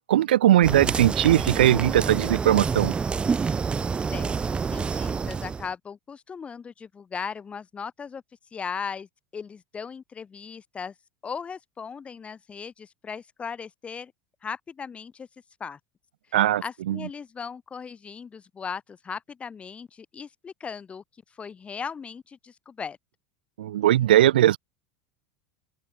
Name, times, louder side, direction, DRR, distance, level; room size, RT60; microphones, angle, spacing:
voice 1, 0.1-2.9 16.3-17.0 23.6-24.6, right 12 dB, 85° right, 0.7 m, -20 dB
sound 1, 0.6-5.7, right 5 dB, 20° right, 0.6 m, -28 dB
voice 2, 4.1-8.2 8.5-10.9 11.2-14.1 14.4-15.3 15.6-15.8 16.6-21.0 21.4-23.0, left 6 dB, 25° left, 1.1 m, -37 dB
open air
hypercardioid pair, 100°, 5 cm